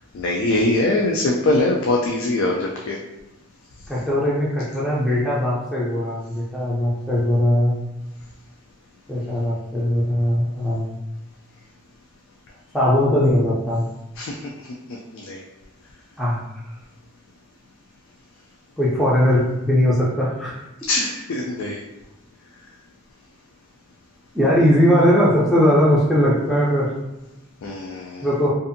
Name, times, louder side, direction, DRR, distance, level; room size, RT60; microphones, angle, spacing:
voice 1, 0.1-3.0 14.2-14.4 15.1-15.4 20.9-21.8 27.6-28.3, left 2 dB, 70° left, -1 dB, 0.3 m, -22 dB
voice 2, 3.9-7.7 9.1-11.0 12.7-13.8 16.2-16.4 18.8-20.6 24.3-26.9 28.2-28.5, equal, ahead, -9 dB, 0.4 m, -19 dB
2.6 x 2.5 x 2.5 m, 0.96 s
head